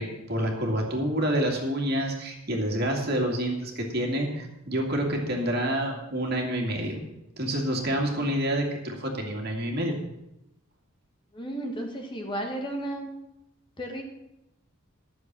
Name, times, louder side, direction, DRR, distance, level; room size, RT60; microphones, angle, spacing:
voice 1, 0.0-7.0 7.4-9.9, right 1 dB, 50° right, 1 dB, 2.3 m, -28 dB
voice 2, 11.3-13.1 13.8-14.0, right 1 dB, 25° left, 2 dB, 1.5 m, -33 dB
12.0 x 7.1 x 7.5 m, 0.88 s
head